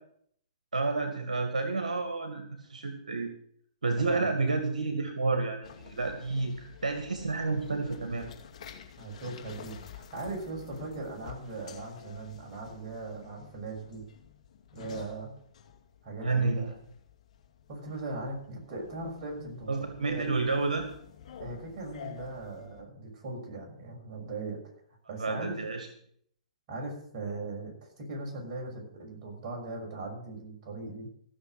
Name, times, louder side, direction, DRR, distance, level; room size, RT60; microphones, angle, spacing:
voice 1, 0.7-3.3 3.8-8.3 16.2-16.7 19.7-20.9 25.2-25.9, right 3 dB, 85° right, 5 dB, 2.1 m, -30 dB
sound 1, 5.6-22.8, left 8 dB, 60° left, 2.4 m, -50 dB
voice 2, 9.0-14.0 14.7-15.4 16.0-16.8 17.7-19.7 20.0-20.2 21.4-24.6 25.1-25.6 26.7-31.1, right 2 dB, 45° right, -1 dB, 6.3 m, -39 dB
15.0 x 6.9 x 7.9 m, 0.63 s
hypercardioid pair, 125°, 4 cm